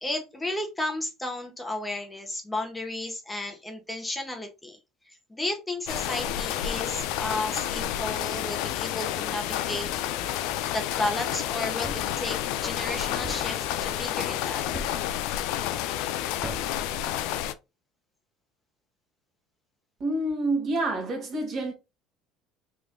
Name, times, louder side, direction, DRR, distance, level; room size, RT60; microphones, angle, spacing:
voice 1, 0.0-4.8 5.1-9.9 10.4-14.7, left 1 dB, 15° left, 1.1 m, -33 dB
sound 1, 5.9-17.5, left 11 dB, 75° left, 0.4 m, -30 dB
Thump thud, 11.8-12.2 13.2-13.6 14.7-15.1 16.4-16.8, right 1 dB, 10° right, 0.8 m, -38 dB
voice 2, 20.0-21.7, right 2 dB, 45° right, 1.6 m, -28 dB
3.6 x 3.3 x 2.3 m
supercardioid pair, 85°, 0 cm